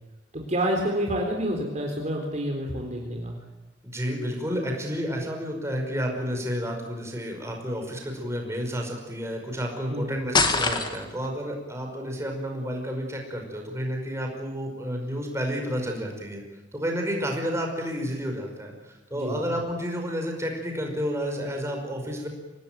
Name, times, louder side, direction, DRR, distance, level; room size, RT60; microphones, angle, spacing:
voice 1, 0.3-3.4 9.9-10.3 19.1-19.4, right 1 dB, 40° right, 1 dB, 3.8 m, -28 dB
voice 2, 3.8-16.4 16.7-22.3, equal, 15° right, 2 dB, 5.5 m, -31 dB
sound 1, 10.3-11.3, left 3 dB, 25° left, 2.2 m, -23 dB
26.0 x 18.5 x 9.4 m, 1.2 s
head